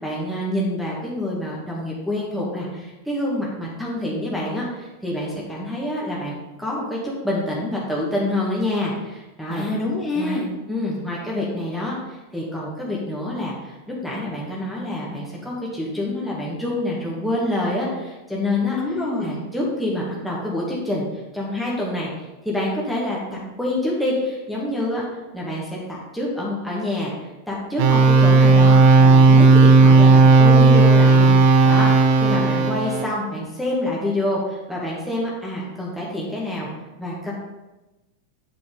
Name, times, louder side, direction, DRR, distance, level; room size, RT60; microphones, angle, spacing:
voice 1, 0.0-9.6 10.1-10.4 10.7-18.8 19.2-21.0 21.3-36.7 37.0-37.3, left 1 dB, ahead, -5 dB, 1.8 m, -27 dB
voice 2, 9.5-10.5 18.7-19.4, left 2 dB, 15° left, -2 dB, 2.0 m, -26 dB
sound 1, 27.8-33.0, right 3 dB, 45° right, 1.5 m, -13 dB
8.5 x 6.1 x 3.9 m, 1.1 s
figure-of-eight pair, 90°, 0 cm